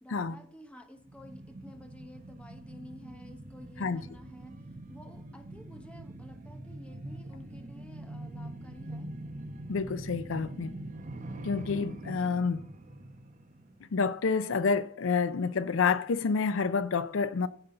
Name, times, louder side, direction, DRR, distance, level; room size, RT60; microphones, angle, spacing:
voice 1, 0.0-4.5 4.9-9.1, left 1 dB, 5° left, 0.9 m, -51 dB
sound 1, 1.0-14.2 14.6-14.7, right 1 dB, 40° right, 0.9 m, -44 dB
voice 2, 9.7-10.7 11.4-12.7 13.8-17.5, left 5 dB, 75° left, 0.5 m, -28 dB
15.0 x 5.5 x 3.9 m
head